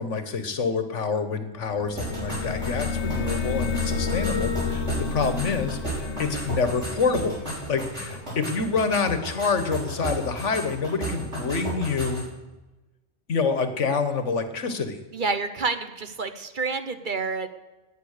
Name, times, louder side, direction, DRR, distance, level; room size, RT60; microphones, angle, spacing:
voice 1, 0.0-7.4 7.7-12.3 13.3-15.0, left 5 dB, 90° left, 9 dB, 1.7 m, -27 dB
sound 1, 1.7-8.4, left 4 dB, 75° left, 1.3 m, -30 dB
sound 2, 2.0-12.3, right 2 dB, 75° right, 5.6 m, -34 dB
voice 2, 15.1-17.5, right 4 dB, 45° right, 9 dB, 1.1 m, -28 dB
18.5 x 9.4 x 6.6 m, 1.1 s
omnidirectional pair, 1.2 m